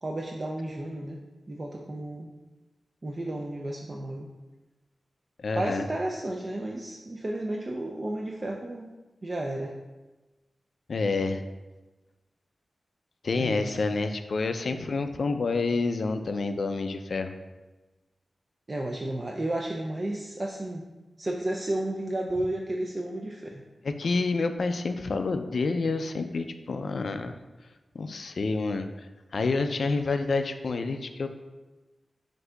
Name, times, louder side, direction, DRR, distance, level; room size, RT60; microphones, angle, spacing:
voice 1, 0.0-1.2 1.5-2.3 3.0-4.3 5.6-8.9 9.2-9.7 13.4-13.8 18.7-20.8 21.2-23.6, right 1 dB, 45° right, 0 dB, 0.4 m, -32 dB
voice 2, 5.4-5.8 10.9-11.4 13.2-17.3 23.8-27.3 28.0-28.9 29.3-31.3, left 3 dB, 70° left, 8 dB, 0.3 m, -28 dB
7.7 x 2.6 x 2.3 m, 1.2 s
cardioid pair, 50°, 0 cm